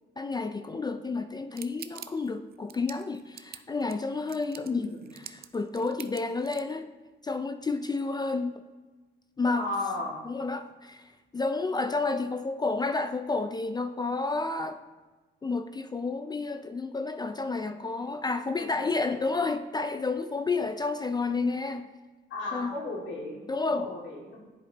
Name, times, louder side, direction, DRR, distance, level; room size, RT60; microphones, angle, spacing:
voice 1, 0.2-5.0 5.2-6.9 7.2-8.6 9.4-9.7 10.2-14.8 15.4-21.9 22.5-22.8 23.5-23.9, left 3 dB, 20° left, 0.3 m, -30 dB
sound 1, 1.6-6.7, right 10 dB, 50° right, 0.4 m, -45 dB
voice 2, 4.7-5.0 9.5-10.2 18.6-18.7 22.3-24.4, left 2 dB, 70° left, 2.3 m, -35 dB
10.0 x 5.0 x 2.9 m
cardioid pair, 90°, 20 cm